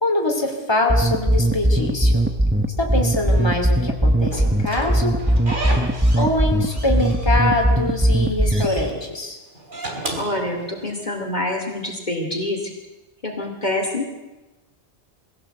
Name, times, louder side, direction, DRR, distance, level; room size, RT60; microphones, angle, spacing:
voice 1, 0.0-2.2 2.8-5.2 6.2-9.4, left 2 dB, 20° left, 1 dB, 2.8 m, -24 dB
sound 1, 0.9-8.9, right 1 dB, 10° right, 1.0 m, -19 dB
Slam / Squeak, 4.3-6.3 6.6-7.6 8.0-8.9 9.6-11.1, right 2 dB, 45° right, 3.4 m, -32 dB
voice 2, 10.2-12.7 13.2-14.1, left 1 dB, 40° left, 1 dB, 2.8 m, -26 dB
21.5 x 16.5 x 8.0 m, 1.1 s
omnidirectional pair, 1.2 m